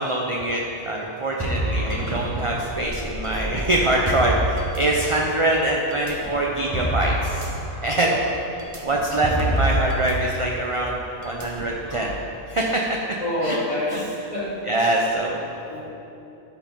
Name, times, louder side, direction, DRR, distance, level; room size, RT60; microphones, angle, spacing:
voice 1, 0.0-7.5 7.8-8.1 8.8-12.2 12.5-12.9 13.4-13.6 13.9-14.0 14.7-15.5, right 1 dB, 35° right, -1 dB, 0.6 m, -24 dB
sound 1, 1.4-5.3 5.9-10.1 10.4-10.6 11.2-12.1, equal, 15° right, 1.0 m, -28 dB
voice 2, 7.9-8.3 13.2-14.5 15.7-15.8, left 1 dB, 25° left, -9 dB, 2.7 m, -27 dB
13.5 x 5.2 x 5.2 m, 3.0 s
omnidirectional pair, 1.4 m